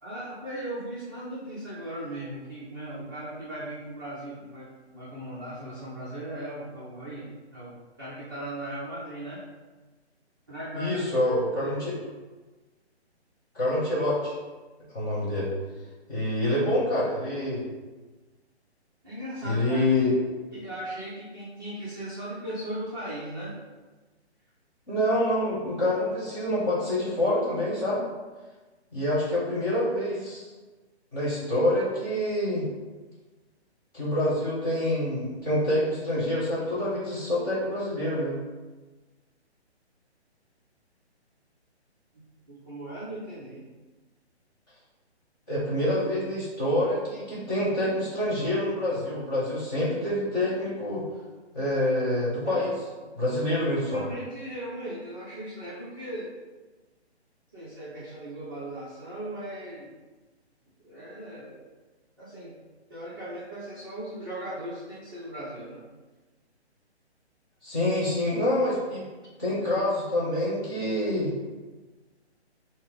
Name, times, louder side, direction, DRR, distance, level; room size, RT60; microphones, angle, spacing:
voice 1, 0.0-9.4 10.5-10.9 11.3-11.7 19.0-20.0 20.5-23.6 42.1-42.2 42.5-43.7 52.4-52.6 53.9-56.4 57.5-59.9 60.8-61.6 62.2-62.6 62.9-65.8, right 1 dB, 20° right, -11 dB, 0.6 m, -38 dB
voice 2, 10.7-11.9 13.5-14.3 14.9-15.5 16.1-17.6 19.4-20.1 24.9-28.0 28.9-30.5 31.1-32.6 33.9-38.4 45.5-51.0 51.5-52.7 53.1-54.0 67.6-69.0 69.4-71.3, left 1 dB, 20° left, -8 dB, 1.3 m, -26 dB
5.7 x 2.1 x 3.9 m, 1.2 s
hypercardioid pair, 165°, 34 cm